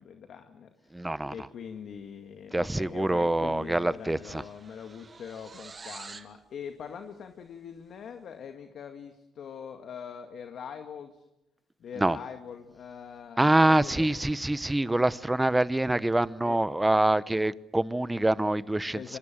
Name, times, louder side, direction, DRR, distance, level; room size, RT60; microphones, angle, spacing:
voice 1, 0.0-11.2 11.8-14.3 16.4-16.6 18.9-19.2, left 7 dB, 65° left, 6 dB, 2.0 m, -43 dB
voice 2, 0.9-1.3 2.5-4.4 12.0-12.2 13.4-19.2, right 1 dB, 10° right, 17 dB, 0.9 m, -25 dB
sound 1, 3.2-3.4 3.7-6.4, right 4 dB, 35° right, 2.1 m, -48 dB
25.0 x 25.0 x 7.6 m, 0.89 s
cardioid pair, 90°, 0 cm